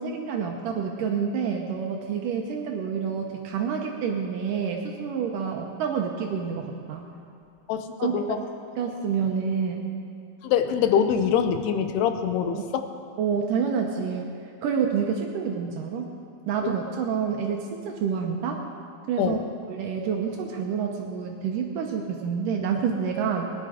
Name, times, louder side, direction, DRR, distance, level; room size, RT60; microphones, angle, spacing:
voice 1, 0.0-7.1 8.0-8.4 8.8-9.8 12.5-12.7 13.2-14.3 14.6-16.0 16.5-18.6 19.1-19.4 19.7-23.5, right 6 dB, 75° right, 1 dB, 2.1 m, -28 dB
voice 2, 7.7-8.4 10.4-12.9 16.6-16.8 19.2-19.5, left 8 dB, 85° left, 8 dB, 2.8 m, -24 dB
19.5 x 10.5 x 5.0 m, 2.4 s
omnidirectional pair, 4.6 m